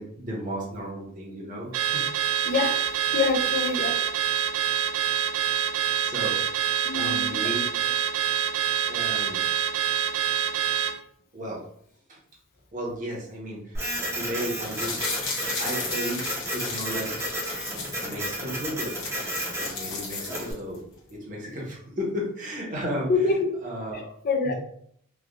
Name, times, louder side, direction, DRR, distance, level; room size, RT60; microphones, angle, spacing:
voice 1, 0.0-2.1 5.8-6.6 6.9-7.9 8.9-9.4 11.3-11.6 12.1-12.2 12.7-13.8 14.1-15.0 15.6-17.3 18.0-18.9 19.6-20.8 21.1-23.1 23.6-24.0 24.4-24.5, equal, 40° right, -4 dB, 1.0 m, -34 dB
Car / Alarm, 1.7-11.0, right 9 dB, 85° right, 0.3 m, -26 dB
voice 2, 2.4-2.9 3.1-4.0 6.8-7.3 20.1-20.2 23.1-23.5 23.9-24.5, left 4 dB, 45° left, 3 dB, 0.5 m, -26 dB
Printer, 13.7-20.5, right 1 dB, 15° right, 0.8 m, -32 dB
sound 1, 14.5-18.2 18.6-18.7 18.9-20.8 21.1-21.2, left 4 dB, 70° left, 1.1 m, -35 dB
3.3 x 2.3 x 2.4 m, 0.67 s
head